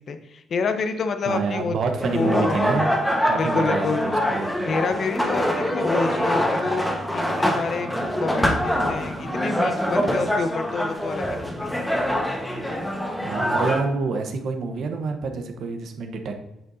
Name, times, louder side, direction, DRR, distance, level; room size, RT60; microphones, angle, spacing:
voice 1, 0.0-1.8 2.1-2.9 3.3-4.0 4.6-6.8 7.1-11.8, left 4 dB, 55° left, 8 dB, 0.8 m, -28 dB
voice 2, 1.2-2.9 3.2-4.8 13.2-16.4, right 4 dB, 65° right, 5 dB, 1.0 m, -27 dB
sound 1, 2.0-13.8, equal, 5° left, 1.2 m, -24 dB
8.6 x 6.4 x 2.7 m, 0.94 s
cardioid pair, 90°, 0 cm